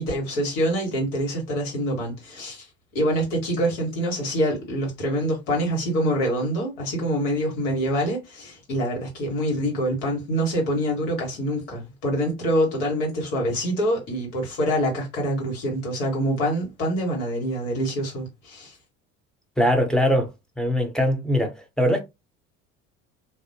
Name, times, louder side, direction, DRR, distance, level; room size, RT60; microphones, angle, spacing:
voice 1, 0.0-2.7 2.9-18.8, equal, 75° left, 1.5 m, -25 dB
voice 2, 19.6-20.3 20.6-22.0, equal, ahead, 0.7 m, -21 dB
2.6 x 2.1 x 2.7 m
hypercardioid pair, 65°, 39 cm